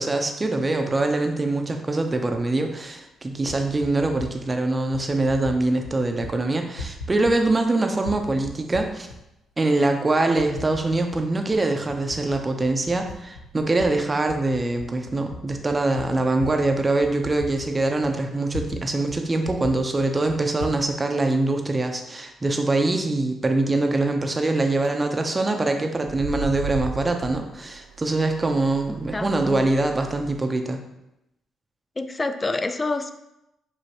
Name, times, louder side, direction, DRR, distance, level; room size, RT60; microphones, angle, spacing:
voice 1, 0.0-9.1 9.6-30.8, right 2 dB, 30° right, 5 dB, 0.7 m, -23 dB
Typing, 2.3-2.4 3.3-4.3 4.9-5.6 5.8-6.3 6.6-7.7 8.0-9.2 9.7-9.8 10.4-11.2 11.5-13.9 14.2-18.8 19.1-19.2 19.4-20.8, left 2 dB, 90° left, 0.7 m, -37 dB
sound 1, 24.5-24.9 26.0-30.4, right 5 dB, 85° right, 0.3 m, -36 dB
voice 2, 29.1-29.7 32.0-33.1, left 3 dB, 30° left, 9 dB, 0.4 m, -27 dB
5.2 x 3.1 x 2.9 m, 0.88 s
hypercardioid pair, 45°, 0 cm